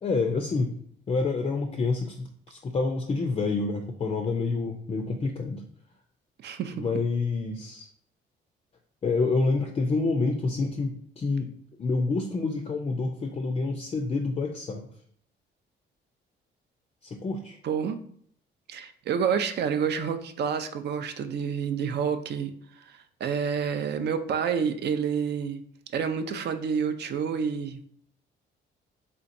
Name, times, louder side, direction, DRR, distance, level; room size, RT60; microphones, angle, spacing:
voice 1, 0.0-0.7 1.1-5.6 6.7-7.9 9.0-11.5 11.8-14.9 17.0-17.6, left 3 dB, 30° left, 3 dB, 0.4 m, -28 dB
voice 2, 6.4-6.8 17.6-18.0 18.7-22.5 22.8-25.6 25.9-27.8, right 7 dB, 60° right, 8 dB, 0.4 m, -28 dB
3.4 x 2.9 x 2.6 m, 0.63 s
cardioid pair, 90°, 20 cm